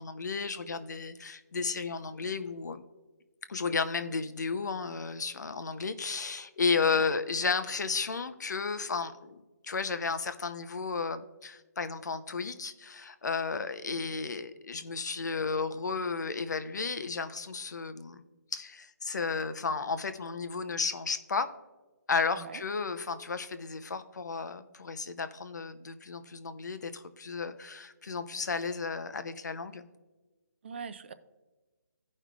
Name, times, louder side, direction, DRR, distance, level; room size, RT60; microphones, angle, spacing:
voice 1, 0.0-2.8 3.5-18.2 18.5-21.5 22.1-29.8, left 5 dB, 65° left, 11 dB, 0.8 m, -33 dB
voice 2, 30.6-31.1, right 6 dB, 35° right, 12 dB, 0.4 m, -41 dB
15.5 x 5.4 x 2.4 m, 1.2 s
hypercardioid pair, 165°, 10 cm